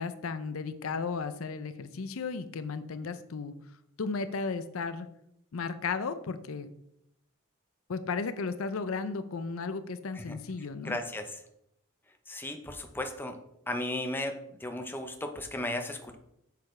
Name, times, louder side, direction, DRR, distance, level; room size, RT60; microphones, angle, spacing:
voice 1, 0.0-3.5 4.0-5.1 5.5-6.7 7.9-11.0, left 4 dB, 75° left, 12 dB, 0.5 m, -34 dB
voice 2, 10.8-11.3 12.3-13.4 13.7-16.2, left 1 dB, 10° left, 5 dB, 0.7 m, -35 dB
8.1 x 6.7 x 3.2 m, 0.78 s
head